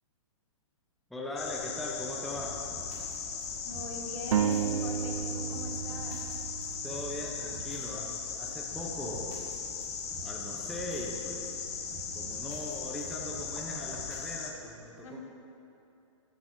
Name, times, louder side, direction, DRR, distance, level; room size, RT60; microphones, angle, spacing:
voice 1, 1.1-2.6 6.8-9.4 10.2-11.4 12.1-15.2, left 1 dB, ahead, -3 dB, 0.6 m, -40 dB
sound 1, 1.4-14.5, left 6 dB, 55° left, 1.1 m, -38 dB
sound 2, 2.2-14.3, right 2 dB, 20° right, 1.7 m, -49 dB
voice 2, 3.7-6.2 15.0-15.2, left 2 dB, 80° left, -1 dB, 1.8 m, -41 dB
sound 3, 4.3-7.9, right 8 dB, 85° right, 0.4 m, -33 dB
14.0 x 9.1 x 2.6 m, 2.8 s
hypercardioid pair, 155°, 16 cm